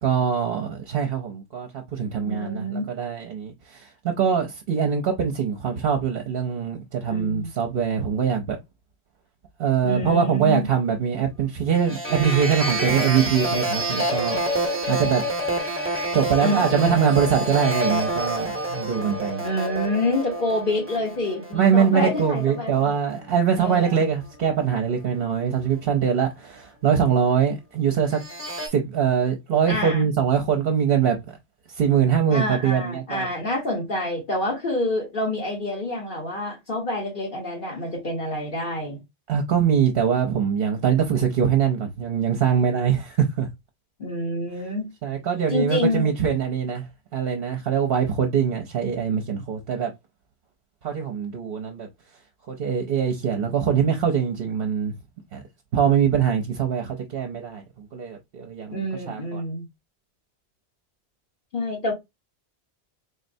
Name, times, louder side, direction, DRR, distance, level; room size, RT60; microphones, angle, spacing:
voice 1, 0.0-8.6 9.6-15.2 16.1-19.4 21.5-28.2 28.7-31.2 31.7-33.3 39.3-43.5 45.0-46.9 47.1-49.9 50.8-51.9 52.5-54.9 55.3-55.4 55.7-59.4, right 7 dB, 60° right, 0.9 m, -23 dB
voice 2, 2.2-2.9 7.1-7.5 9.8-10.6 16.4-17.1 19.4-22.9 23.6-24.0 29.7-30.1 32.3-39.0 44.0-44.9 45.5-46.1 58.7-59.6 61.5-61.9, left 1 dB, 50° left, 1.1 m, -27 dB
sound 1, 11.8-23.2 23.6-24.0 28.1-28.7, right 1 dB, 15° right, 0.7 m, -28 dB
3.9 x 3.2 x 2.6 m
omnidirectional pair, 1.1 m